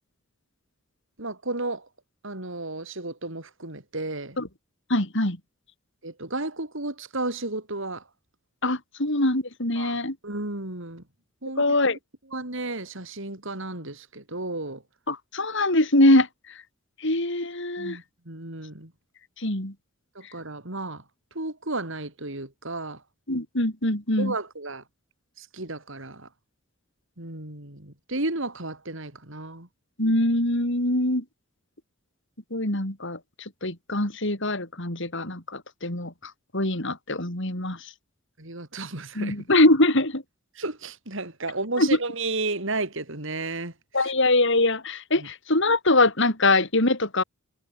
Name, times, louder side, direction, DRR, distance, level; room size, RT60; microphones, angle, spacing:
voice 1, 1.2-1.9 2.2-4.4 6.0-8.0 9.8-10.0 10.2-11.0 11.4-11.8 12.3-14.8 17.8-18.9 20.1-21.0 21.3-23.0 24.2-24.8 25.4-26.3 27.2-29.7 38.4-39.4 40.6-44.1 45.2-45.3, right 2 dB, 65° right, 4.5 m, -33 dB
voice 2, 4.9-5.4 8.6-10.2 11.6-12.0 15.1-16.3 17.0-18.0 19.4-19.7 23.3-24.3 30.0-31.2 32.5-33.2 33.6-37.8 39.2-40.2 41.8-41.9 43.9-47.2, left 2 dB, 60° left, 5.7 m, -23 dB
head